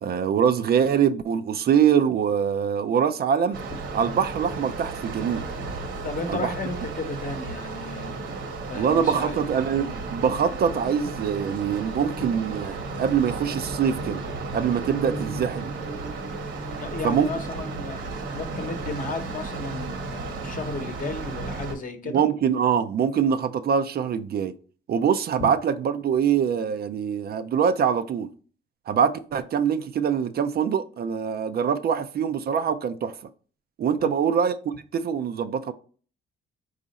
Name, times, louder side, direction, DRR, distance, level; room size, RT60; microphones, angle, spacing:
voice 1, 0.0-3.6 3.9-5.4 6.3-6.5 8.8-14.2 14.5-15.7 17.0-17.3 22.0-24.5 24.9-28.3 28.9-33.1 33.8-34.5 34.9-35.7, right 7 dB, 50° right, 0.4 m, -24 dB
sound 1, 3.5-21.8, right 3 dB, 70° right, 1.2 m, -34 dB
voice 2, 6.0-8.2 8.7-9.4 16.7-22.2 34.0-34.1, left 3 dB, 45° left, 0.9 m, -34 dB
sound 2, 14.9-19.7, right 3 dB, 5° right, 0.6 m, -41 dB
4.8 x 2.4 x 4.0 m
cardioid pair, 90°, 20 cm